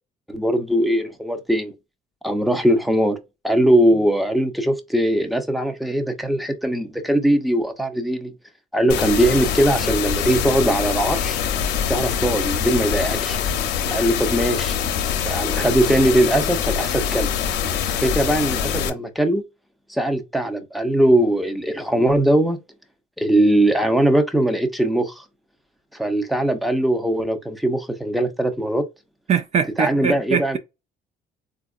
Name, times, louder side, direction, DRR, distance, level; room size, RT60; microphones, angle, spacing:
voice 1, 0.3-1.7 2.2-3.2 3.4-8.3 8.7-11.4 11.9-13.4 13.9-14.8 15.2-17.3 18.0-19.4 19.9-22.6 23.2-25.2 25.9-28.9 29.8-30.6, right 1 dB, ahead, 0.6 m, -20 dB
sound 1, 8.9-18.9, left 8 dB, 80° left, 0.7 m, -24 dB
voice 2, 29.3-30.6, right 7 dB, 40° right, 0.4 m, -22 dB
3.9 x 2.4 x 2.4 m
cardioid pair, 110°, 17 cm